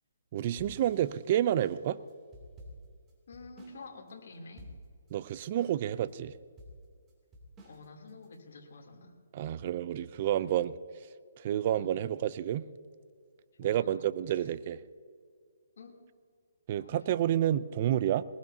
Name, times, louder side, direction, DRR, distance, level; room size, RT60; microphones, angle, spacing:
voice 1, 0.3-2.0 5.1-6.3 9.3-10.7 11.4-12.7 13.6-14.8 16.7-18.2, right 11 dB, 40° right, 16 dB, 0.5 m, -29 dB
sound 1, 0.6-3.8 4.1-4.2 4.6-5.1 5.6-6.1 6.6-8.4, equal, 15° right, 2.8 m, -51 dB
voice 2, 3.3-4.7 7.6-9.2 11.7-12.0 13.6-14.4 15.8-16.0 16.7-17.2, left 3 dB, 65° left, 0 dB, 3.1 m, -49 dB
22.0 x 20.0 x 2.8 m, 2.1 s
hypercardioid pair, 155°, 0 cm